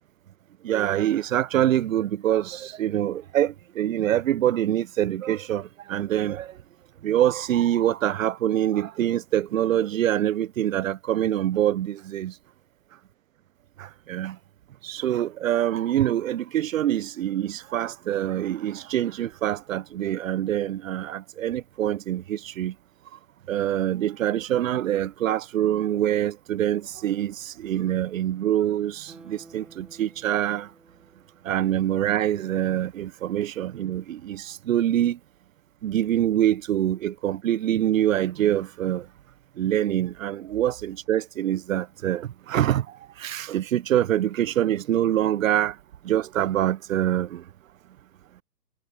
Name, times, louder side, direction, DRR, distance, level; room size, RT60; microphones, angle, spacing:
voice 1, 0.6-6.5 7.0-12.3 13.8-14.4 14.8-22.7 23.5-30.7 31.4-35.2 35.8-39.1 39.6-42.9 43.2-45.8 46.0-47.4, right 11 dB, 55° right, 0.5 m, -25 dB
Guitar, 29.1-32.3 32.7-32.8, right 2 dB, ahead, 0.8 m, -53 dB
hypercardioid pair, 155°, 50 cm